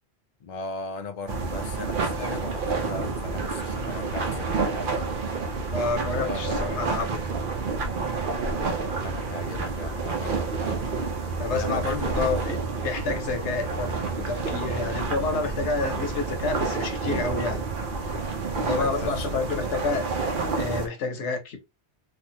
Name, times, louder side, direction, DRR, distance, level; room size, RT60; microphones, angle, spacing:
voice 1, 0.4-4.9 6.1-6.7 8.9-10.8 11.5-12.5 18.6-19.9, left 4 dB, 50° left, 0.5 m, -38 dB
sound 1, 1.3-20.9, right 4 dB, 55° right, 0.8 m, -29 dB
voice 2, 5.7-7.2 11.4-12.6 12.8-17.7 18.5-21.6, left 4 dB, 90° left, 1.1 m, -29 dB
3.5 x 2.4 x 2.7 m
omnidirectional pair, 1.2 m